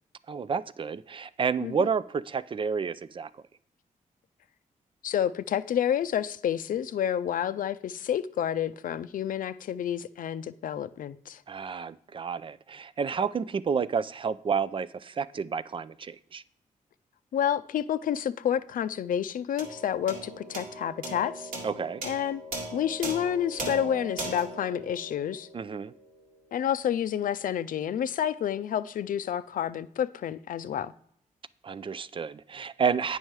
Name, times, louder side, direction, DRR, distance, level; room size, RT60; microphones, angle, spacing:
voice 1, 0.3-3.3 11.5-16.4 21.6-22.0 25.5-25.9 31.6-33.2, right 6 dB, 35° right, 0.4 m, -30 dB
voice 2, 5.0-11.4 17.3-21.5 22.0-22.4 22.7-25.5 26.5-30.9, left 9 dB, 70° left, 0.5 m, -29 dB
sound 1, 19.6-26.2, right 2 dB, 80° right, 1.8 m, -39 dB
8.9 x 5.5 x 4.7 m
cardioid pair, 95°, 14 cm